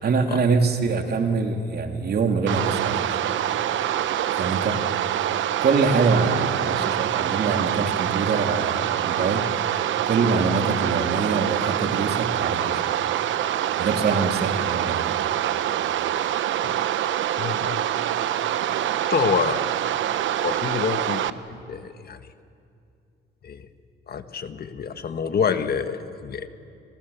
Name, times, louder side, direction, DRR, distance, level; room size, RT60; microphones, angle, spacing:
voice 1, 0.0-3.2 4.3-4.8 5.6-9.5 10.0-12.8 13.8-15.0, right 4 dB, 55° right, 4 dB, 3.0 m, -24 dB
sound 1, 2.5-21.3, right 11 dB, 75° right, 1.0 m, -25 dB
voice 2, 17.4-17.8 19.1-19.6 20.4-22.2 23.4-23.6 24.1-26.5, left 6 dB, 50° left, 9 dB, 1.7 m, -27 dB
29.5 x 27.0 x 7.2 m, 2.5 s
cardioid pair, 90°, 20 cm